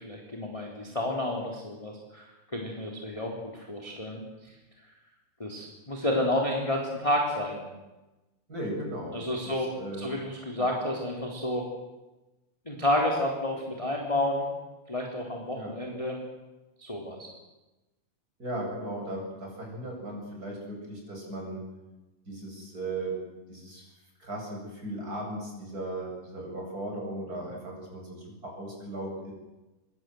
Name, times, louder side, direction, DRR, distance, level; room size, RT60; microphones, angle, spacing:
voice 1, 0.0-4.5 5.4-7.6 9.1-11.7 12.6-14.5 14.9-16.2 16.8-17.3, left 1 dB, 10° left, -1 dB, 2.5 m, -30 dB
voice 2, 8.5-9.2 9.4-10.1 10.6-10.7 15.5-15.7 18.4-21.6 22.3-23.2 23.5-23.9 24.2-29.3, right 1 dB, 15° right, 0 dB, 8.1 m, -37 dB
26.5 x 23.5 x 7.9 m, 1.1 s
omnidirectional pair, 5.9 m